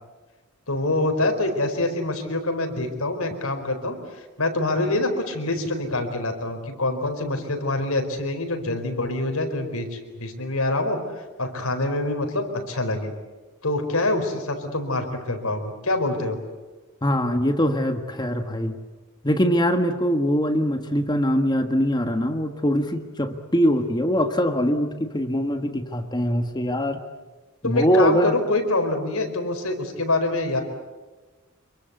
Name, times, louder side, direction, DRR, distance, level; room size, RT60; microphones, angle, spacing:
voice 1, 0.7-4.0 4.4-11.0 11.4-13.1 13.6-16.4 27.6-30.6, left 2 dB, 80° left, 5 dB, 4.5 m, -25 dB
voice 2, 17.0-18.8 19.2-27.0 27.6-28.4, equal, 20° left, 6 dB, 1.4 m, -22 dB
26.5 x 23.5 x 8.2 m, 1.2 s
head